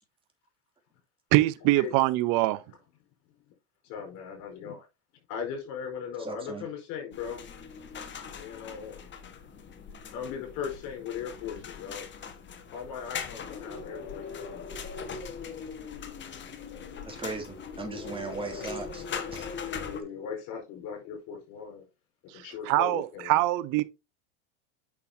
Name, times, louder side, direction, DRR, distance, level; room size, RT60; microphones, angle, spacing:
voice 1, 1.3-2.6 22.3-23.8, right 17 dB, 60° right, 0.9 m, -24 dB
voice 2, 3.8-4.9 5.3-7.4 8.3-9.0 10.0-12.1 12.7-14.6 15.3-15.4 16.6-17.2 19.8-21.9 22.3-23.4, left 7 dB, 60° left, 4.8 m, -38 dB
voice 3, 6.2-6.7 17.1-19.5, right 3 dB, 15° right, 2.9 m, -38 dB
sound 1, 7.1-20.0, left 6 dB, 30° left, 1.5 m, -40 dB
8.7 x 6.1 x 2.8 m
supercardioid pair, 105°, 37 cm